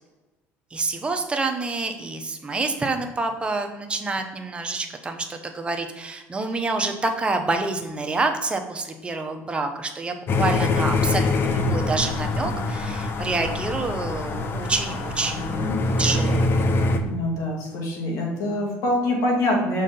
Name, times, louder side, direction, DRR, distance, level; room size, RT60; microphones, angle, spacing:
voice 1, 0.7-16.4, right 3 dB, 20° right, 4 dB, 0.8 m, -27 dB
sound 1, 10.3-17.0, left 2 dB, 45° left, 0.7 m, -24 dB
voice 2, 17.0-19.8, left 1 dB, 70° left, -1 dB, 2.1 m, -24 dB
6.2 x 4.2 x 3.8 m, 1.1 s
cardioid pair, 110°, 6 cm